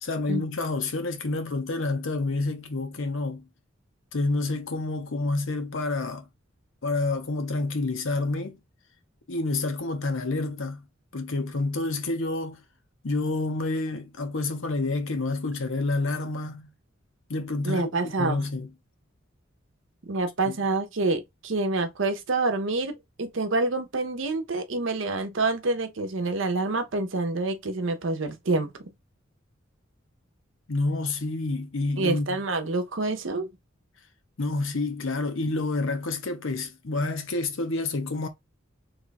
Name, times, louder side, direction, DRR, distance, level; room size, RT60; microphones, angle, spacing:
voice 1, 0.0-3.4 4.1-6.3 6.8-8.6 9.3-10.9 11.1-12.6 13.0-16.7 17.3-18.7 20.5-20.6 30.7-32.4 34.4-38.3, left 2 dB, 75° left, 0.8 m, -28 dB
voice 2, 17.6-18.4 20.1-28.9 32.0-33.5, right 3 dB, 70° right, 0.8 m, -27 dB
3.2 x 2.3 x 4.0 m
head